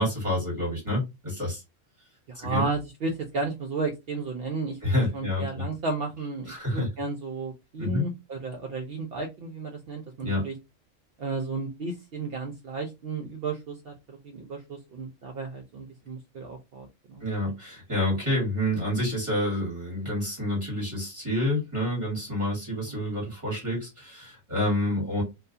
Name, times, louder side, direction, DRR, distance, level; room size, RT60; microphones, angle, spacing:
voice 1, 0.0-1.6 2.3-2.6 4.8-5.6 6.5-6.9 7.8-8.0 10.2-10.4 17.2-25.2, left 1 dB, 25° right, -4 dB, 1.3 m, -28 dB
voice 2, 2.3-4.8 5.1-10.5 11.2-17.3 22.9-23.1, right 3 dB, 60° right, 3 dB, 0.6 m, -33 dB
2.4 x 2.3 x 2.6 m, 0.22 s
omnidirectional pair, 1.3 m